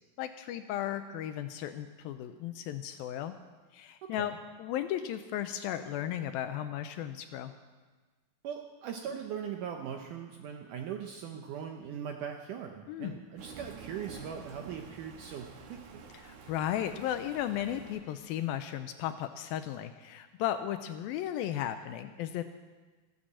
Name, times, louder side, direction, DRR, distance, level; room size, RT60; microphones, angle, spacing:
voice 1, 0.2-3.3 3.7-4.3 4.6-7.5 12.9-13.2 16.2-22.4, left 11 dB, 80° left, 9 dB, 2.2 m, -35 dB
voice 2, 4.0-4.4 8.4-16.0, right 8 dB, 75° right, 4 dB, 1.9 m, -40 dB
Thunder, 13.4-18.0, right 4 dB, 60° right, 2.4 m, -49 dB
14.0 x 11.5 x 7.4 m, 1.3 s
omnidirectional pair, 4.6 m